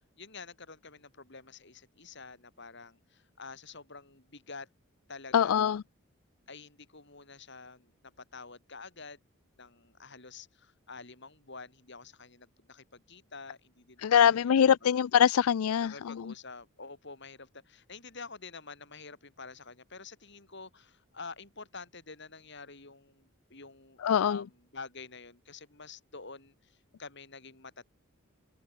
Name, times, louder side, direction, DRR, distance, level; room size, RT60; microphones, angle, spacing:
voice 1, 0.2-4.7 5.1-5.7 6.5-9.2 9.6-14.2 15.8-27.8, left 4 dB, 55° left, 5.5 m, -48 dB
voice 2, 5.3-5.8 14.0-16.3 24.0-24.4, left 8 dB, 85° left, 0.4 m, -24 dB
head